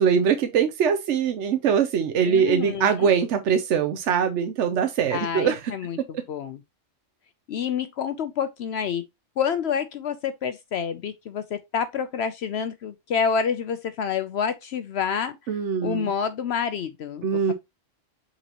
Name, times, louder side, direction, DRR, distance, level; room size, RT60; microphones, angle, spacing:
voice 1, 0.0-5.7 6.0-6.2 15.5-16.1 17.2-17.5, right 7 dB, 80° right, 1.0 m, -22 dB
voice 2, 2.2-3.1 5.1-6.0 6.3-6.6 7.5-9.0 9.4-15.4 15.8-17.5, left 7 dB, 65° left, 0.8 m, -28 dB
7.9 x 4.1 x 2.9 m
omnidirectional pair, 1.2 m